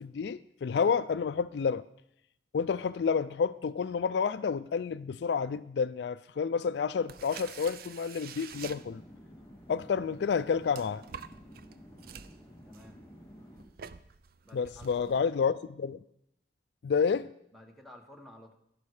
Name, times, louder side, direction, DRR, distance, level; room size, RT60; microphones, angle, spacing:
voice 1, 0.0-1.8 2.5-9.0 9.7-11.0 14.5-16.0 16.8-17.3, left 6 dB, 70° left, 0.3 m, -29 dB
sound 1, 6.9-9.3 10.0-15.2, right 7 dB, 55° right, 0.5 m, -48 dB
sound 2, 8.5-13.6, equal, 20° left, 3.2 m, -52 dB
voice 2, 14.4-15.1 17.5-18.5, equal, ahead, 1.3 m, -52 dB
11.5 x 11.5 x 4.9 m
head